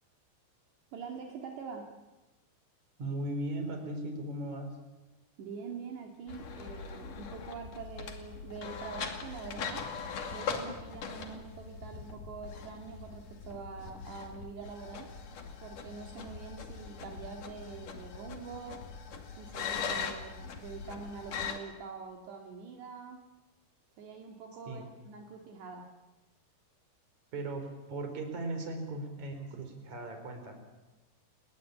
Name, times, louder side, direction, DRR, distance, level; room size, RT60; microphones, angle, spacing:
voice 1, 0.9-1.9 5.4-9.9 10.3-15.1 15.6-18.9 19.4-23.3 24.0-25.9, right 5 dB, 70° right, 2 dB, 4.3 m, -45 dB
voice 2, 3.0-4.8 24.7-24.9 27.3-30.5, right 2 dB, 40° right, 5 dB, 5.6 m, -37 dB
sound 1, 6.3-21.6, left 6 dB, 50° left, 3.6 m, -41 dB
29.5 x 21.5 x 8.8 m, 1.1 s
omnidirectional pair, 5.2 m